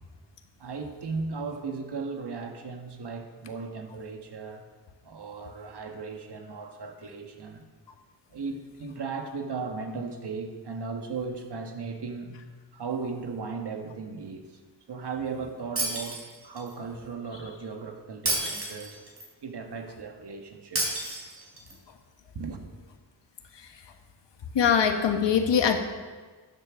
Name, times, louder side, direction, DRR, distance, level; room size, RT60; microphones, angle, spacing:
voice 1, 0.6-4.7 5.0-7.6 8.3-12.3 12.7-14.6 14.9-19.0 19.4-20.8 22.3-22.7, right 4 dB, 70° right, 4 dB, 1.7 m, -36 dB
Shatter, 15.8-16.7 18.3-19.3 20.8-21.7, right 1 dB, 35° right, 4.2 m, -30 dB
voice 2, 24.5-25.8, left 7 dB, 80° left, 6 dB, 1.4 m, -22 dB
12.5 x 7.6 x 6.4 m, 1.4 s
cardioid pair, 55°, 42 cm